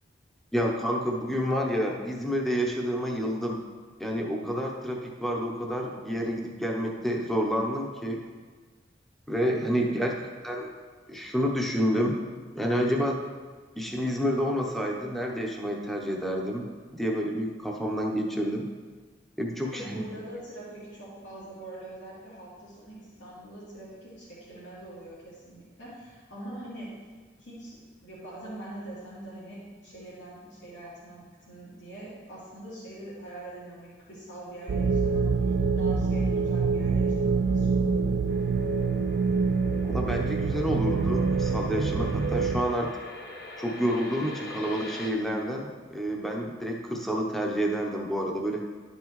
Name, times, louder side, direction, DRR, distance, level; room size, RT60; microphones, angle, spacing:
voice 1, 0.5-3.6 4.0-8.2 9.3-10.1 10.4-10.7 11.1-12.2 12.5-13.2 13.8-16.7 16.9-18.7 19.4-20.0 39.8-42.9 43.6-48.6, equal, ahead, -1 dB, 0.7 m, -29 dB
voice 2, 19.7-26.9 27.4-38.2, right 1 dB, 80° left, -9 dB, 2.5 m, -43 dB
sound 1, 34.7-42.6, right 4 dB, 65° right, 0.4 m, -25 dB
sound 2, 38.3-45.1, left 2 dB, 55° left, 1.0 m, -44 dB
11.5 x 5.5 x 3.1 m, 1.4 s
head